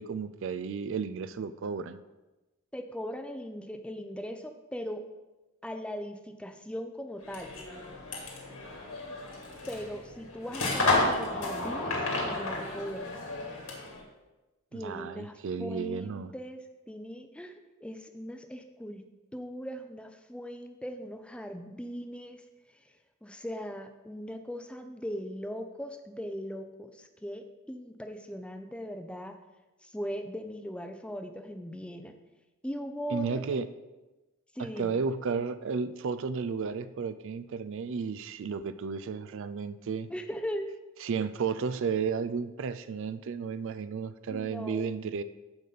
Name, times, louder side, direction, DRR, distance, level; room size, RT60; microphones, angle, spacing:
voice 1, 0.0-2.0 14.7-16.3 33.1-33.7 34.6-40.1 41.0-45.2, right 5 dB, 60° right, 13 dB, 0.4 m, -33 dB
voice 2, 2.7-5.0 5.6-7.5 9.7-13.2 14.7-16.6 16.9-19.1 19.3-22.4 23.2-29.4 29.8-32.1 32.6-33.6 34.5-35.0 40.1-40.7 44.3-44.9, equal, 5° left, 7 dB, 0.5 m, -39 dB
sound 1, 7.2-14.0, left 2 dB, 75° left, 2.3 m, -32 dB
14.0 x 5.2 x 4.0 m, 1.1 s
head